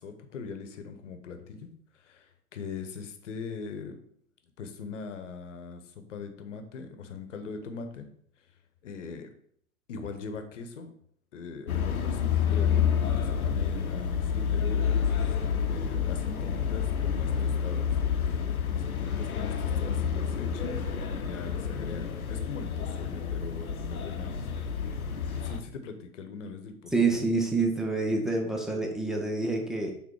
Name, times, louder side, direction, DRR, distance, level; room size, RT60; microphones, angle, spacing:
voice 1, 0.0-1.7 2.0-4.0 4.6-8.1 8.8-9.3 9.9-10.9 11.3-15.1 15.4-18.0 18.7-20.9 21.1-24.5 25.4-27.3, left 5 dB, 55° left, 7 dB, 1.1 m, -41 dB
sound 1, 11.7-25.6, left 7 dB, 75° left, 0.8 m, -29 dB
voice 2, 26.9-29.9, right 3 dB, ahead, 2 dB, 0.5 m, -27 dB
6.1 x 3.9 x 4.6 m, 0.65 s
figure-of-eight pair, 100°, 43 cm